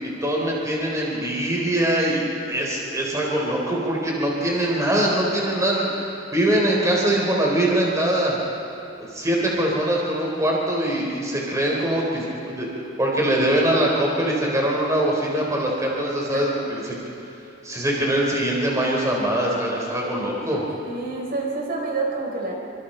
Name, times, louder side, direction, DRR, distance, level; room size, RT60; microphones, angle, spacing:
voice 1, 0.0-8.4 9.1-12.7 13.0-17.0 17.6-20.6, right 1 dB, 15° right, -3 dB, 3.8 m, -23 dB
voice 2, 20.8-22.5, right 3 dB, 50° right, -1 dB, 4.4 m, -28 dB
27.0 x 25.5 x 4.4 m, 3.0 s
head